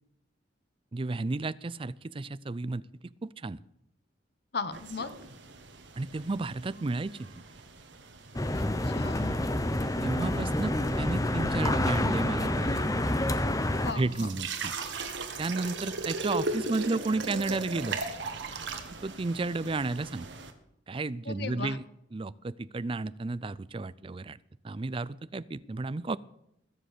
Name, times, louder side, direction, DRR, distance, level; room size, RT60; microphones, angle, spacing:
voice 1, 0.9-2.8 3.2-3.6 6.0-7.6 10.0-12.9 13.9-14.7 15.4-18.0 19.0-20.3 20.9-21.8 22.1-24.4 24.6-26.2, right 3 dB, 30° right, 18 dB, 0.4 m, -32 dB
voice 2, 4.5-5.1 8.5-9.4 13.8-14.3 21.2-21.8, left 4 dB, 60° left, 13 dB, 1.1 m, -37 dB
sound 1, 4.7-20.5, right 3 dB, 75° right, 1.8 m, -39 dB
sound 2, 8.3-13.9, left 1 dB, 20° left, 0.8 m, -28 dB
21.0 x 7.7 x 6.7 m, 0.79 s
head